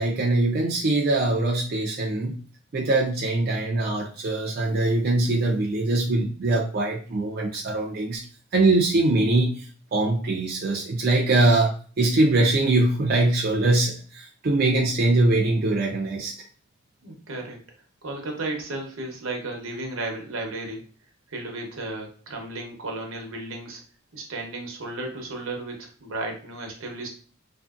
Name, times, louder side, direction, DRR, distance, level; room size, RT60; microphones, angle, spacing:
voice 1, 0.0-2.4 2.7-8.2 8.5-9.5 9.9-16.3, right 2 dB, 45° right, -1 dB, 0.4 m, -22 dB
voice 2, 17.0-17.6 18.0-20.8 21.3-23.8 24.1-27.1, right 2 dB, 80° right, 2 dB, 0.8 m, -34 dB
2.6 x 2.5 x 2.4 m, 0.40 s
head